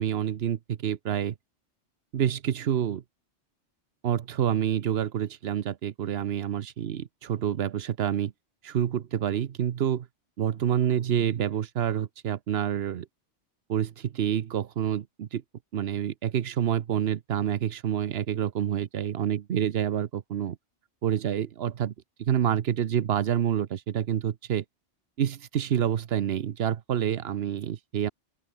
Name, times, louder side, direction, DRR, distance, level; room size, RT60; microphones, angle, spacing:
voice 1, 0.0-1.3 2.1-3.0 4.0-8.3 8.6-10.1 10.4-13.1 13.7-15.4 15.7-20.6 21.0-21.9 22.2-24.6 25.2-28.1, right 9 dB, 60° right, 1.0 m, -28 dB
open air
omnidirectional pair, 1.2 m